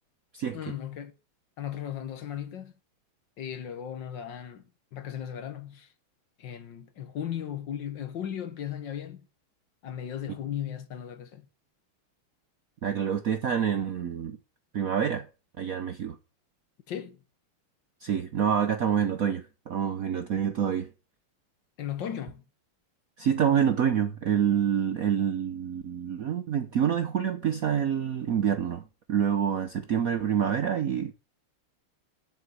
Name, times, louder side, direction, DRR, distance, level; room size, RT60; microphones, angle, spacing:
voice 1, 0.5-1.1 1.6-2.7 3.4-4.6 4.9-5.9 6.4-9.3 9.8-11.5 16.9-17.2 21.8-22.4, left 9 dB, 60° left, 1.8 m, -36 dB
voice 2, 12.8-14.4 14.7-15.3 15.6-16.2 18.0-20.9 23.2-28.8 29.1-31.1, right 8 dB, 60° right, 0.9 m, -27 dB
8.1 x 6.8 x 7.8 m
omnidirectional pair, 2.4 m